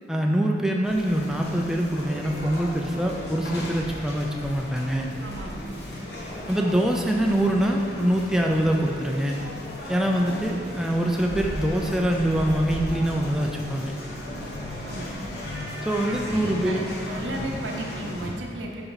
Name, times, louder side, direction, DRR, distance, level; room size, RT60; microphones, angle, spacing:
voice 1, 0.1-5.1 6.5-9.4 9.9-13.9 15.8-16.9, right 1 dB, 5° right, 0 dB, 0.4 m, -24 dB
sound 1, 0.8-18.3, left 1 dB, 60° left, 1.2 m, -36 dB
voice 2, 5.2-5.8 14.8-15.1 16.0-18.9, right 1 dB, 90° right, 1 dB, 0.9 m, -35 dB
8.0 x 4.4 x 4.0 m, 2.5 s
head